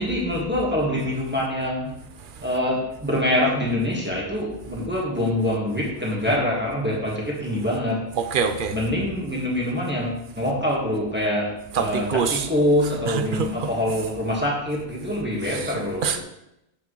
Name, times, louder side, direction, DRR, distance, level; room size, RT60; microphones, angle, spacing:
voice 1, 0.0-1.9 2.4-8.1 8.7-16.2, left 1 dB, 10° right, 1.5 m, -25 dB
voice 2, 8.2-8.8 11.7-12.5 13.1-13.5 15.5-16.2, right 6 dB, 60° right, 0.8 m, -25 dB
8.4 x 5.8 x 3.1 m
omnidirectional pair, 1.1 m